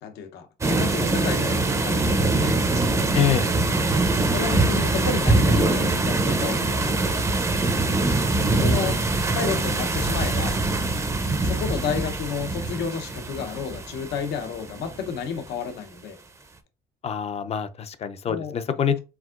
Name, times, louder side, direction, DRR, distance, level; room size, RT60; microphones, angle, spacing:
voice 1, 0.0-2.7 4.3-7.2 8.6-9.0 9.3-10.6 11.4-16.2 18.3-18.5, left 6 dB, 75° left, 0.8 m, -31 dB
sound 1, 0.6-15.2, right 2 dB, 20° right, 0.6 m, -23 dB
voice 2, 3.1-3.5 17.0-19.0, left 8 dB, 40° left, 0.5 m, -25 dB
4.7 x 3.6 x 2.4 m
cardioid pair, 110°, 17 cm